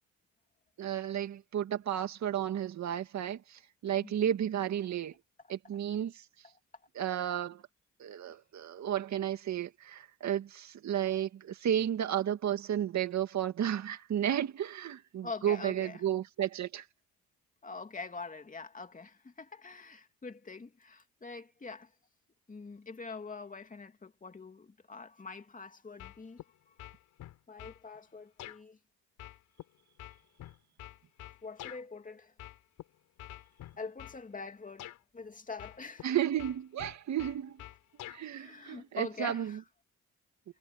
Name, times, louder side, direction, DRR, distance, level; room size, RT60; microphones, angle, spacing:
voice 1, 0.8-5.1 5.5-6.3 7.0-7.6 8.0-16.9 36.0-37.6 38.1-39.6, right 10 dB, 65° right, 2.2 m, -33 dB
voice 2, 4.0-4.3 15.2-16.0 17.6-21.9 22.5-26.7 27.5-28.8 31.4-32.3 33.8-36.1 38.3-39.6, left 4 dB, 25° left, 2.7 m, -44 dB
sound 1, 26.0-26.5 26.8-27.8 28.4-28.6 29.2-31.8 32.4-32.8 33.2-34.2 34.8-35.0 35.6-36.1 36.4-38.2, left 13 dB, 85° left, 5.0 m, -47 dB
cardioid pair, 90°, 30 cm